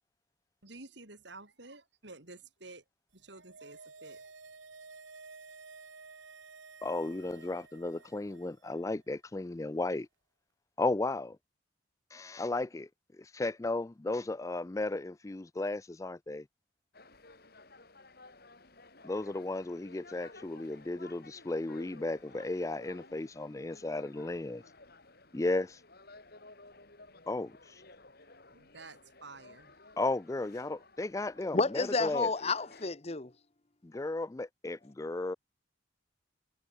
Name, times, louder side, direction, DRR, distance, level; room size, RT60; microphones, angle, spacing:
voice 1, 0.6-2.8 3.1-4.2 28.5-29.7, right 3 dB, 65° right, 4.6 m, -51 dB
sound 1, 3.2-8.7 8.9-9.0, right 4 dB, 80° right, 3.5 m, -53 dB
voice 2, 6.8-10.1 10.8-11.4 12.1-12.9 13.2-16.4 19.0-24.6 25.3-25.8 27.3-27.8 30.0-32.3 33.8-35.4, left 2 dB, 15° left, 0.4 m, -34 dB
sound 2, 16.9-32.9, left 2 dB, 50° left, 4.8 m, -56 dB
voice 3, 31.5-33.3, left 3 dB, 30° left, 1.0 m, -30 dB
head